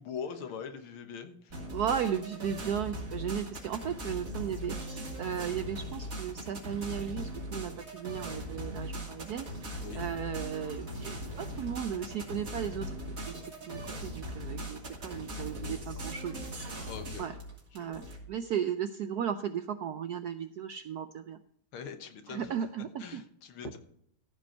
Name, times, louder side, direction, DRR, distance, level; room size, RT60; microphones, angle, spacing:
voice 1, 0.0-1.6 9.8-10.0 16.9-17.3 17.7-18.0 21.7-22.7 23.0-23.8, left 6 dB, 85° left, 7 dB, 2.0 m, -42 dB
sound 1, 1.5-18.2, equal, 40° right, 3.0 m, -39 dB
voice 2, 1.7-13.3 13.6-16.8 17.2-17.3 17.7-21.4 22.3-23.2, right 8 dB, 80° right, 9 dB, 0.9 m, -36 dB
15.0 x 5.3 x 5.5 m, 0.72 s
omnidirectional pair, 2.3 m